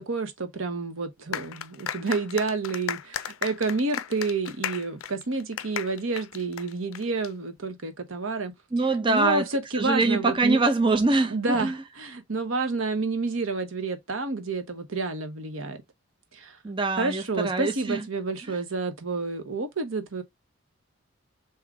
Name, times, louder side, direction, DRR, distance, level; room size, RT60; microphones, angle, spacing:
voice 1, 0.0-8.5 9.1-10.6 11.3-15.8 16.3-16.6 17.0-20.2, right 3 dB, 75° right, 1.0 m, -29 dB
sound 1, 1.3-7.3, left 10 dB, 75° left, 0.4 m, -35 dB
voice 2, 8.7-9.5 9.7-11.8 16.6-18.1 18.5-18.6, right 3 dB, 25° right, 0.5 m, -24 dB
3.7 x 2.9 x 4.7 m
head